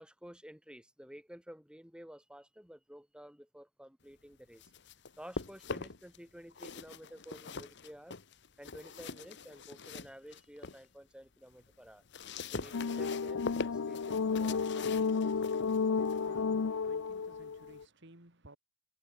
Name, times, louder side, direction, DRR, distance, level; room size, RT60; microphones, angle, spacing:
voice 1, 0.0-4.6 5.2-8.2 8.6-12.0 12.5-15.3, equal, 5° right, 2.3 m, -52 dB
sound 1, 4.3-6.2 6.5-10.9 11.3-17.9, left 4 dB, 55° left, 1.2 m, -44 dB
sound 2, 12.7-17.8, left 5 dB, 80° left, 0.6 m, -32 dB
voice 2, 16.1-18.6, right 1 dB, 55° right, 3.5 m, -58 dB
head